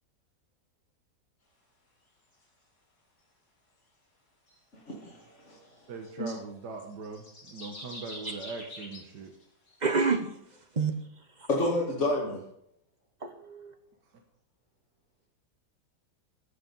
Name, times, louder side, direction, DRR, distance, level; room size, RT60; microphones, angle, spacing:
sound 1, 4.5-4.6 5.1-5.2 6.9-9.8, left 1 dB, 65° left, 3.6 m, -45 dB
voice 1, 4.7-5.9 6.2-6.3 11.5-12.4, left 1 dB, 45° left, -5 dB, 2.4 m, -30 dB
voice 2, 5.9-9.3, right 4 dB, 75° right, 3 dB, 1.8 m, -41 dB
voice 3, 9.8-10.3 10.8-10.9 13.2-13.7, right 4 dB, 30° right, 7 dB, 0.9 m, -27 dB
15.0 x 6.9 x 5.4 m, 0.75 s
omnidirectional pair, 1.8 m